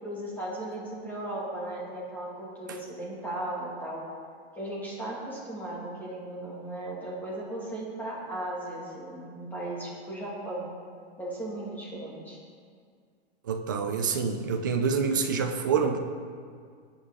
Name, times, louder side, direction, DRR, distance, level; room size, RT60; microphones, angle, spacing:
voice 1, 0.0-4.0 4.5-10.7 11.2-12.4, right 1 dB, 5° left, -6 dB, 2.0 m, -36 dB
voice 2, 13.4-16.0, right 5 dB, 20° right, 6 dB, 0.3 m, -27 dB
21.5 x 8.8 x 3.6 m, 2.1 s
supercardioid pair, 180°, 33 cm